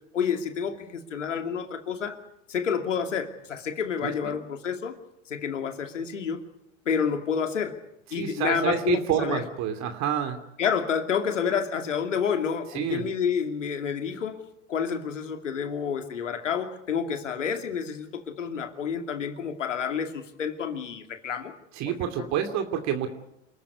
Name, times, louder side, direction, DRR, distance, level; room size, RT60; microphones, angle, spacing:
voice 1, 0.1-2.2 2.5-5.0 5.3-6.4 6.9-7.7 8.1-9.4 10.6-14.4 14.7-21.5 21.9-22.3, left 7 dB, 85° left, 6 dB, 2.7 m, -29 dB
voice 2, 4.0-4.4 8.1-10.4 12.7-13.0 21.7-23.1, right 9 dB, 50° right, 7 dB, 2.7 m, -28 dB
27.5 x 14.5 x 9.6 m, 0.81 s
hypercardioid pair, 95°, 36 cm